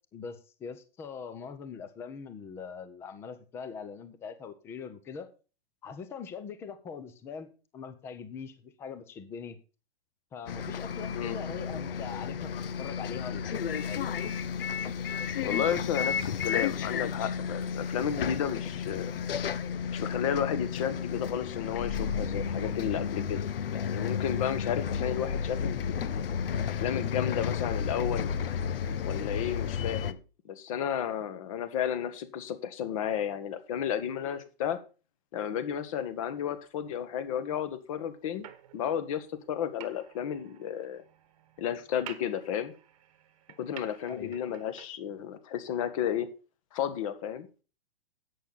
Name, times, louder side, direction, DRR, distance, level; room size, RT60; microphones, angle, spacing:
voice 1, 0.1-5.3 5.8-9.6 10.3-12.5 12.8-14.1 44.1-44.3, left 6 dB, 10° left, 11 dB, 0.7 m, -42 dB
Bus, 10.5-30.1, left 7 dB, 70° left, 1.1 m, -32 dB
voice 2, 15.4-19.1 19.9-23.4 23.7-25.9 26.7-28.3 29.0-30.2 30.4-34.8 35.3-38.5 38.7-41.0 41.6-42.7 43.6-46.3 46.7-47.5, left 9 dB, 35° left, 12 dB, 1.6 m, -32 dB
sound 1, 38.4-44.9, right 11 dB, 35° right, 1.3 m, -51 dB
11.0 x 8.7 x 4.1 m, 0.33 s
hypercardioid pair, 170°, 30 cm